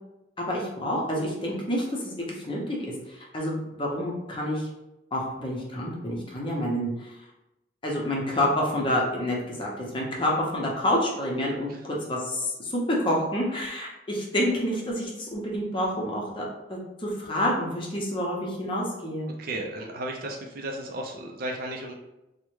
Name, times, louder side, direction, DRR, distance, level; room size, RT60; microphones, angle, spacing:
voice 1, 0.4-4.7 5.1-7.1 7.8-19.3, left 1 dB, 30° left, -3 dB, 0.7 m, -28 dB
voice 2, 19.4-21.9, right 1 dB, 55° right, 0 dB, 0.4 m, -34 dB
3.4 x 2.1 x 3.1 m, 0.93 s
head